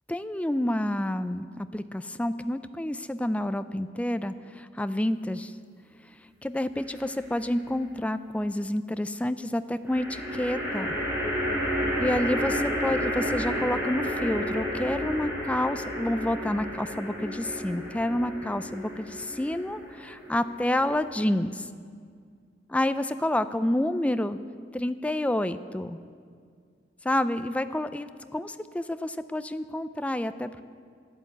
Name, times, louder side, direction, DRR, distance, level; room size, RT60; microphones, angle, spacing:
voice 1, 0.1-5.5 6.4-10.9 12.0-21.7 22.7-24.4 24.7-26.0 27.0-30.6, left 1 dB, 10° left, 12 dB, 0.4 m, -29 dB
sound 1, 6.7-7.4 9.9-21.2, equal, 10° right, 4.5 m, -31 dB
12.0 x 10.5 x 7.9 m, 2.1 s
head